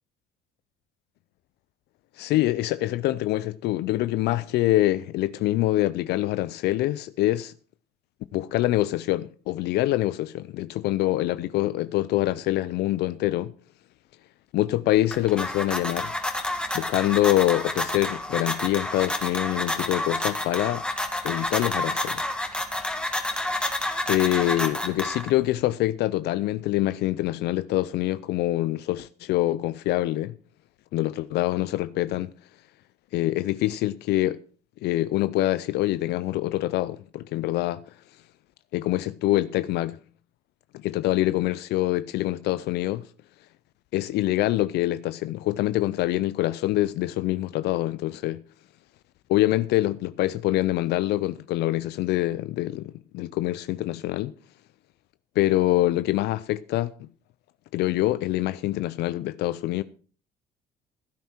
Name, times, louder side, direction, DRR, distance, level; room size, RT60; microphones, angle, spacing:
voice 1, 2.2-7.5 8.3-13.5 14.5-16.1 16.7-20.8 21.2-22.2 24.1-30.3 30.9-32.3 33.1-34.4 34.8-37.8 38.7-40.0 40.7-43.1 43.9-48.4 49.3-54.3 55.4-57.1 57.7-59.8, left 16 dB, 75° left, 0.5 m, -25 dB
sound 1, 14.9-25.5, left 1 dB, 5° left, 2.0 m, -29 dB
15.5 x 9.2 x 4.4 m
cardioid pair, 110°, 17 cm